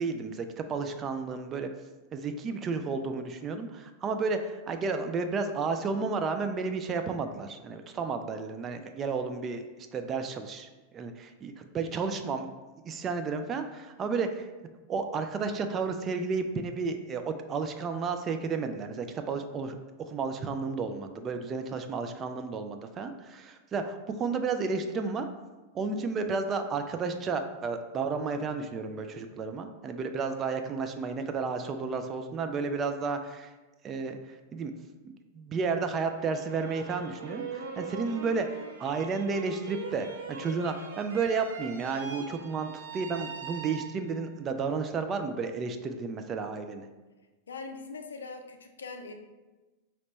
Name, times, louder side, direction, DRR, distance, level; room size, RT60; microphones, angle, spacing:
voice 1, 0.0-1.7 2.1-10.7 10.9-12.5 12.9-14.5 14.9-25.3 25.7-33.5 33.8-34.7 35.3-38.5 38.8-46.9, right 4 dB, 25° right, 7 dB, 0.3 m, -32 dB
sound 1, 36.1-44.3, right 5 dB, 65° right, 0.6 m, -42 dB
voice 2, 47.5-49.1, left 4 dB, 70° left, 5 dB, 0.4 m, -41 dB
5.1 x 3.0 x 3.0 m, 1.2 s
figure-of-eight pair, 90°, 0 cm